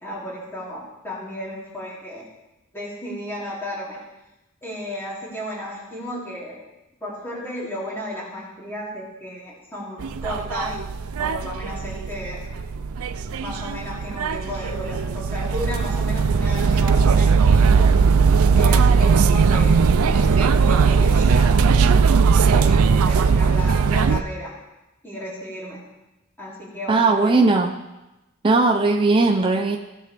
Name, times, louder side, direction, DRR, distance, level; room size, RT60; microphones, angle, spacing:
voice 1, 0.0-2.3 2.7-4.0 4.6-6.6 7.0-10.8 11.2-12.4 13.4-17.9 18.5-21.6 22.5-24.5 25.0-25.9 26.4-27.5, left 1 dB, 10° left, -6 dB, 2.7 m, -34 dB
sound 1, 10.0-24.2, right 5 dB, 75° right, 0.4 m, -18 dB
voice 2, 26.9-27.8 28.4-29.8, right 3 dB, 25° right, 2 dB, 0.6 m, -18 dB
16.5 x 7.3 x 3.4 m, 1.0 s
head